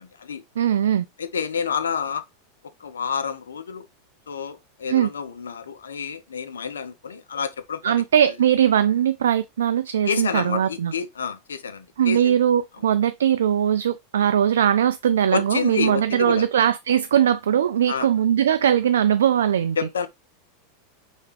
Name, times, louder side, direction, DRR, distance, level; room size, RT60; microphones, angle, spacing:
voice 1, 0.0-0.4 1.2-2.2 2.8-3.9 4.3-8.0 10.0-12.4 15.3-16.5 17.9-18.1 19.8-20.1, left 6 dB, 90° left, 0.6 m, -29 dB
voice 2, 0.6-1.0 4.9-5.1 7.8-10.9 12.0-19.8, right 9 dB, 80° right, 0.3 m, -20 dB
4.5 x 3.5 x 3.3 m
hypercardioid pair, 100°, 0 cm